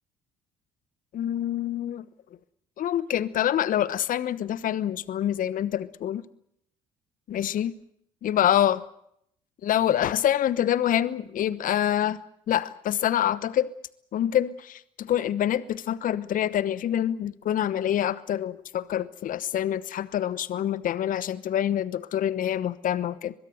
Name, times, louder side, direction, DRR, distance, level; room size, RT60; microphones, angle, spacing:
voice 1, 1.1-2.0 2.8-6.2 7.3-7.7 8.2-8.8 9.6-12.2 12.5-13.7 14.1-23.3, left 11 dB, 50° left, 1.0 m, -26 dB
23.5 x 21.5 x 7.9 m
hypercardioid pair, 55°, 18 cm